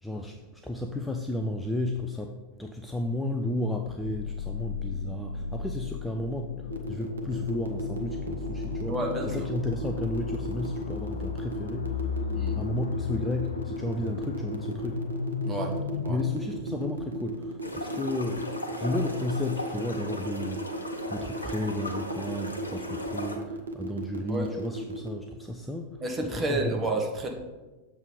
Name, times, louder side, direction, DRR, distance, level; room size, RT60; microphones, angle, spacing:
voice 1, 0.0-12.2 12.6-15.1 16.1-26.8, left 1 dB, 5° left, 3 dB, 0.4 m, -33 dB
sound 1, 4.0-17.8, left 5 dB, 65° left, 0.4 m, -35 dB
sound 2, 6.7-25.1, right 2 dB, 70° right, 0.7 m, -36 dB
voice 2, 8.9-9.3 12.3-12.6 15.4-15.7 16.0-16.2 24.3-24.5 26.0-27.3, right 2 dB, 20° right, 1 dB, 1.2 m, -30 dB
sound 3, 17.6-23.4, left 1 dB, 80° left, 0.8 m, -37 dB
7.1 x 3.4 x 5.4 m, 1.2 s
figure-of-eight pair, 90°, 0 cm